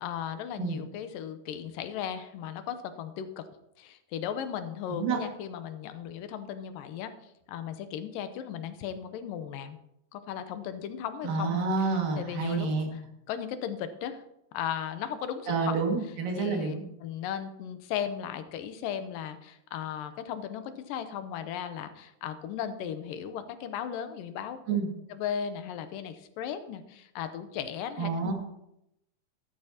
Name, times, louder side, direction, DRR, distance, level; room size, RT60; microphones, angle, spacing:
voice 1, 0.0-3.5 3.8-7.1 7.5-9.8 10.1-13.0 13.3-14.2 14.5-15.8 16.4-16.8 17.0-24.8 25.1-28.3, left 9 dB, 85° left, 10 dB, 2.5 m, -36 dB
voice 2, 11.2-12.9 15.5-16.8 24.7-24.9 28.0-28.3, right 4 dB, 80° right, 1 dB, 3.7 m, -28 dB
13.5 x 12.0 x 2.9 m, 0.83 s
omnidirectional pair, 3.9 m